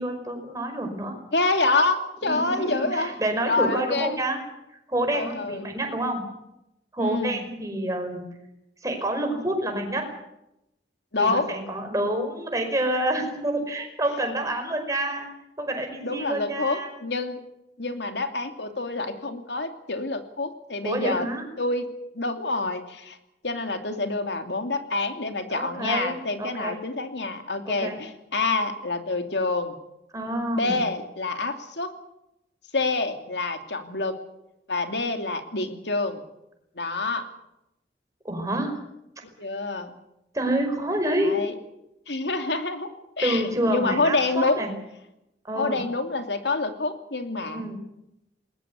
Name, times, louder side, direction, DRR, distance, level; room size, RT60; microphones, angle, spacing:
voice 1, 0.0-1.1 2.2-4.4 4.7-6.2 6.9-8.2 8.8-10.1 11.2-15.3 15.6-16.9 20.8-21.4 25.5-26.7 27.6-28.0 30.1-30.8 38.2-38.7 40.3-41.4 43.2-44.7 45.4-45.8 47.5-47.8, right 1 dB, 20° right, 4 dB, 5.1 m, -28 dB
voice 2, 1.3-3.2 3.4-4.2 5.1-5.7 7.0-7.4 11.1-11.5 16.0-17.4 17.8-21.3 21.6-21.9 22.1-23.2 23.4-29.8 30.6-31.9 32.7-34.2 34.7-36.2 36.8-37.3 39.4-39.9 41.2-41.5 42.1-42.9 43.2-44.7 45.6-47.7, left 3 dB, 80° left, 6 dB, 2.7 m, -27 dB
20.5 x 20.0 x 8.2 m, 0.87 s
head